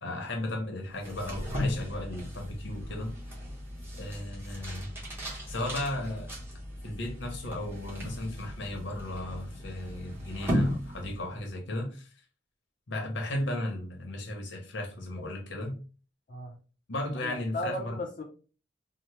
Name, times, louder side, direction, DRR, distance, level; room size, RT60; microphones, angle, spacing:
voice 1, 0.0-3.1 4.0-4.9 5.5-6.4 6.8-12.1 12.9-15.8 16.9-18.0, left 1 dB, 70° left, 2 dB, 0.8 m, -35 dB
sound 1, 0.9-11.5, equal, 10° right, 0.8 m, -36 dB
voice 2, 17.2-18.2, left 1 dB, 40° left, -2 dB, 0.5 m, -35 dB
2.8 x 2.1 x 3.1 m, 0.37 s
head